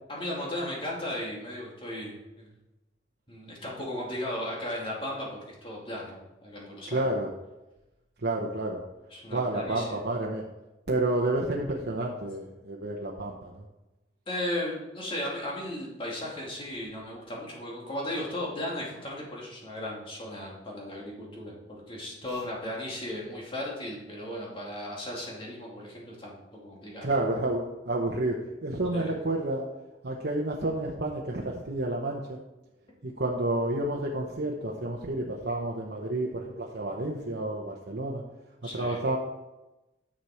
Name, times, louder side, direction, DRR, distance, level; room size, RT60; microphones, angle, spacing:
voice 1, 0.1-2.5 3.3-7.0 9.1-10.0 14.3-26.4 26.6-27.1 28.9-29.1 38.6-39.0, left 1 dB, 30° left, -3 dB, 2.4 m, -36 dB
voice 2, 6.9-7.3 8.2-8.8 9.3-10.4 10.9-13.6 27.0-29.7 30.0-32.4 33.0-38.2 38.7-39.2, right 2 dB, 65° right, -2 dB, 1.0 m, -30 dB
10.0 x 6.4 x 4.4 m, 1.0 s
head